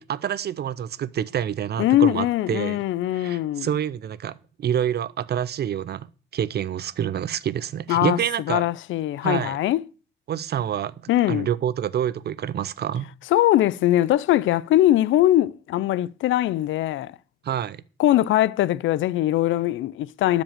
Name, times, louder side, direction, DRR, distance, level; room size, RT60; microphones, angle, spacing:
voice 1, 0.0-2.8 3.1-6.1 6.3-8.7 9.2-9.6 10.3-10.9 11.3-13.1 17.4-17.8, right 9 dB, 55° right, 0.7 m, -27 dB
voice 2, 1.8-3.7 7.9-8.2 8.5-9.8 11.1-11.5 13.3-17.1 18.0-20.4, left 13 dB, 75° left, 0.5 m, -21 dB
12.5 x 5.3 x 7.5 m
cardioid pair, 90°, 20 cm